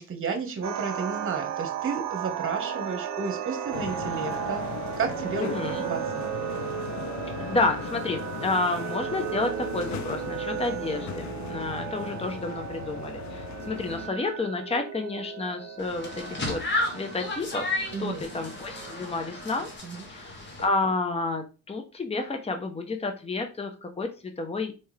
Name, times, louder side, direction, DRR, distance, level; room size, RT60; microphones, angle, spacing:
voice 1, 0.0-4.6 5.0-5.5 5.8-6.0 17.9-18.3 19.8-20.0, right 5 dB, 45° right, 6 dB, 1.4 m, -32 dB
sound 1, 0.6-19.8, right 9 dB, 60° right, 0.7 m, -35 dB
sound 2, 3.7-14.1, left 10 dB, 70° left, 0.5 m, -38 dB
voice 2, 5.4-5.9 7.5-16.6 16.9-19.7 20.1-24.7, left 3 dB, 20° left, 5 dB, 0.9 m, -30 dB
sound 3, 15.8-20.6, left 2 dB, 35° left, 1.5 m, -33 dB
4.4 x 3.5 x 3.3 m, 0.31 s
cardioid pair, 90°, 30 cm